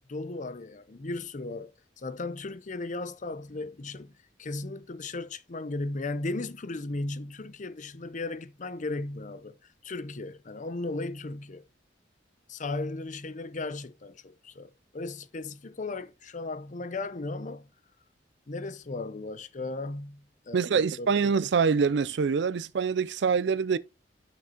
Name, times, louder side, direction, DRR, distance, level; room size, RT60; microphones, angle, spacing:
voice 1, 0.1-1.7 2.0-9.5 9.8-11.7 12.5-17.7 18.5-21.1, left 2 dB, 40° left, 0.6 m, -36 dB
voice 2, 20.5-23.8, right 5 dB, 65° right, 0.4 m, -25 dB
6.0 x 6.0 x 4.3 m
head